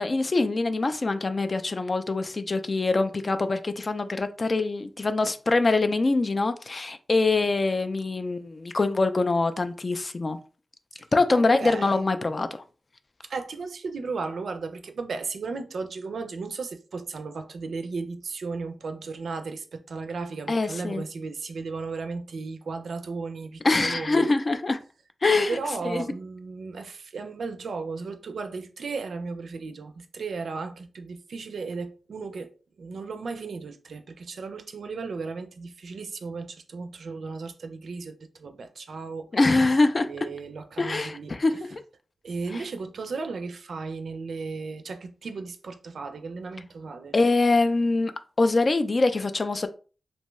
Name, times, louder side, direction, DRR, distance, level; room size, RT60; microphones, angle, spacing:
voice 1, 0.0-10.4 11.1-12.5 20.5-21.0 23.6-24.8 25.2-25.6 25.8-26.0 39.3-40.1 40.8-41.8 47.1-48.1 48.4-49.7, left 3 dB, 45° left, 0.4 m, -24 dB
voice 2, 11.3-12.1 13.3-24.3 25.5-39.3 40.1-41.3 42.2-47.1, right 4 dB, 75° right, 0.4 m, -35 dB
2.6 x 2.2 x 3.0 m
cardioid pair, 45°, 0 cm